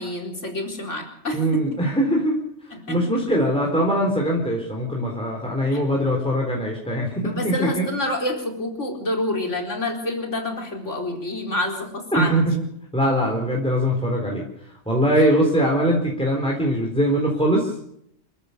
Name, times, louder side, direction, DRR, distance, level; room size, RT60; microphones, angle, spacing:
voice 1, 0.0-1.6 2.9-3.0 5.7-5.8 7.2-12.4, left 1 dB, 75° left, 1 dB, 4.6 m, -27 dB
voice 2, 1.3-2.4 2.9-7.8 12.1-12.6 12.9-17.7, equal, 5° left, -1 dB, 3.9 m, -22 dB
27.5 x 14.0 x 6.8 m, 0.74 s
omnidirectional pair, 1.3 m